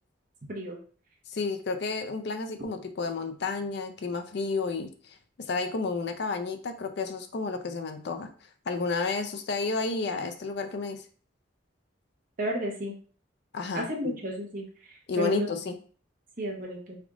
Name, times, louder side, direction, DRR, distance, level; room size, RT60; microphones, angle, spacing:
voice 1, 1.3-8.3 8.7-11.0 13.5-14.1 15.1-15.7, left 4 dB, 60° left, 7 dB, 0.4 m, -31 dB
voice 2, 12.4-12.9 13.7-15.5 16.4-17.0, equal, 45° right, -1 dB, 1.0 m, -32 dB
3.4 x 2.4 x 3.6 m, 0.41 s
head